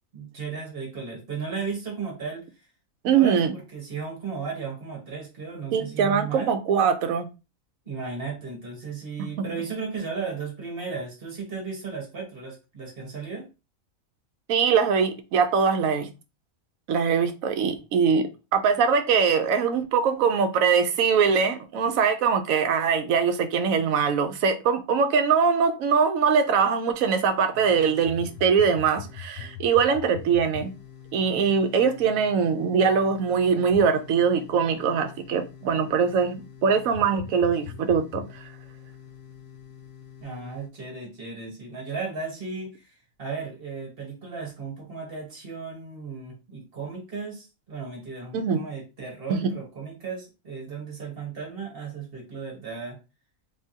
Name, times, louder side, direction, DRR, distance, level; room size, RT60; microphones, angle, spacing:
voice 1, 0.1-2.4 3.1-6.5 7.8-13.5 40.2-42.9 43.2-53.0, right 5 dB, 45° right, 1.6 m, -35 dB
voice 2, 3.0-3.5 5.7-7.3 14.5-16.1 16.9-30.7 31.1-38.4 48.3-48.6 49.3-49.5, right 6 dB, 80° right, 1.1 m, -22 dB
sound 1, 27.5-40.7, left 8 dB, 75° left, 1.0 m, -43 dB
3.7 x 3.4 x 2.7 m
omnidirectional pair, 1.4 m